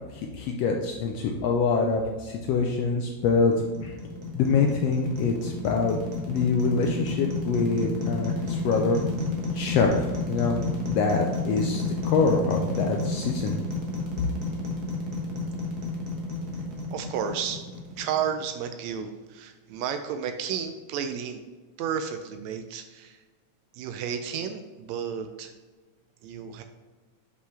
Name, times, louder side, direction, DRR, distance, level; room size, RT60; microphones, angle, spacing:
voice 1, 0.1-3.5 3.8-4.0 4.3-6.0 6.3-9.0 9.5-13.6, left 4 dB, 90° left, 2 dB, 1.4 m, -25 dB
sound 1, 3.3-18.5, left 2 dB, 55° right, 1.1 m, -31 dB
voice 2, 16.9-17.7 18.0-21.4 21.8-23.2 23.7-25.5 26.2-26.6, right 7 dB, 80° right, 7 dB, 1.6 m, -32 dB
7.5 x 5.4 x 3.3 m, 1.3 s
omnidirectional pair, 3.5 m